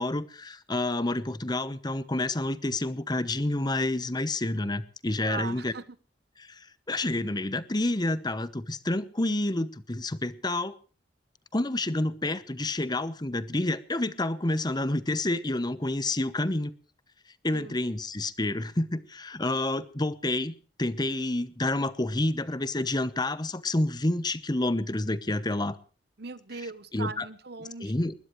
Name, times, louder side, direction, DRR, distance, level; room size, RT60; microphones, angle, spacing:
voice 1, 0.0-5.7 6.9-10.7 11.5-16.7 17.4-25.8 26.9-27.2 27.8-28.1, left 2 dB, 25° left, 1.0 m, -29 dB
voice 2, 5.2-6.0 17.5-17.8 26.2-27.9, right 4 dB, 60° right, 1.1 m, -39 dB
20.5 x 20.0 x 3.2 m
head